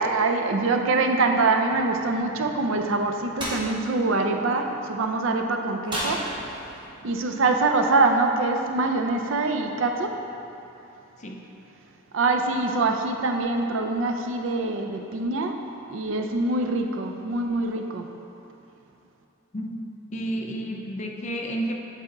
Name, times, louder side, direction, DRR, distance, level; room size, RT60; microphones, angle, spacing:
voice 1, 0.0-6.2 7.0-10.1 12.1-15.6 15.9-18.1, right 3 dB, 65° right, 4 dB, 0.5 m, -24 dB
sound 1, 3.4-3.6 5.9-6.8, equal, 20° right, 1.0 m, -31 dB
voice 2, 19.5-21.8, right 1 dB, 35° left, 2 dB, 0.5 m, -31 dB
8.1 x 4.2 x 3.9 m, 2.9 s
head